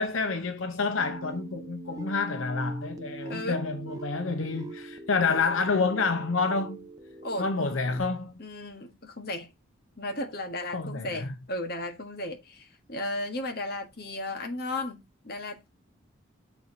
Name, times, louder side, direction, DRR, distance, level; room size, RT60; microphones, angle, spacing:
voice 1, 0.0-6.8 7.4-8.3 10.7-11.3, left 4 dB, 80° left, 0.9 m, -28 dB
sound 1, 1.0-8.0, right 2 dB, 15° right, 0.6 m, -42 dB
voice 2, 3.3-3.6 7.2-7.5 8.4-9.5 10.0-15.7, left 1 dB, 50° left, 1.6 m, -35 dB
7.0 x 4.6 x 3.9 m
head